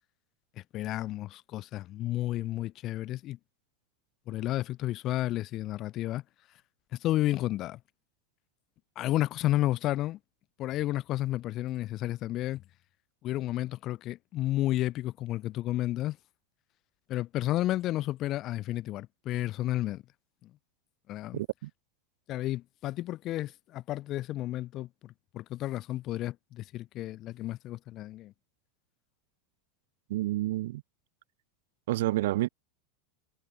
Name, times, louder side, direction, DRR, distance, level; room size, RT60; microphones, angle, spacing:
voice 1, 0.7-3.4 4.3-6.2 6.9-7.8 9.0-10.2 10.6-12.6 13.2-16.2 17.1-20.0 20.4-20.5 21.1-21.4 22.3-28.3, left 15 dB, 40° left, 2.5 m, -32 dB
voice 2, 21.3-21.7 30.1-30.8 31.9-32.5, right 16 dB, 60° right, 1.2 m, -29 dB
figure-of-eight pair, 85°, 0 cm